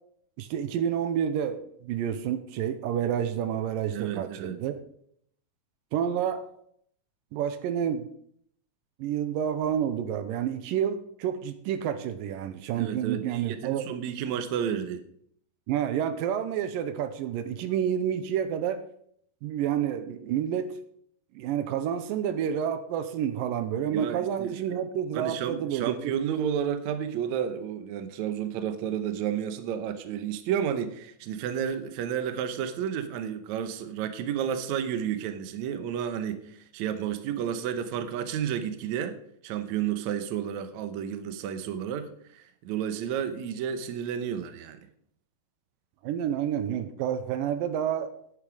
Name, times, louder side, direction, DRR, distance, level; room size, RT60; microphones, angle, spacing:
voice 1, 0.4-4.7 5.9-6.5 7.3-8.1 9.0-13.8 15.7-18.8 19.4-20.7 21.4-26.1 46.0-48.1, right 9 dB, 85° right, 2.4 m, -29 dB
voice 2, 3.9-4.6 12.8-15.0 23.9-24.8 25.1-39.2 39.4-44.8, right 9 dB, 70° right, 2.0 m, -31 dB
10.5 x 8.8 x 4.9 m
omnidirectional pair, 4.0 m